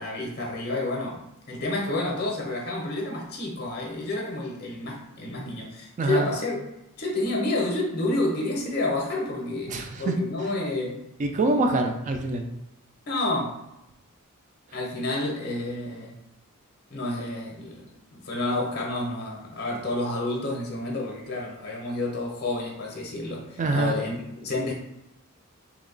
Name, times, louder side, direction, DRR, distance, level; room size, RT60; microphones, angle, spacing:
voice 1, 0.0-6.6 7.0-11.0 13.1-13.6 14.7-16.2 16.9-17.8 18.1-24.7, left 2 dB, 50° left, -1 dB, 0.7 m, -29 dB
voice 2, 6.0-6.3 9.7-10.1 11.2-12.4 23.6-24.0, right 2 dB, 35° right, 4 dB, 0.3 m, -25 dB
2.9 x 2.2 x 3.8 m, 0.89 s
head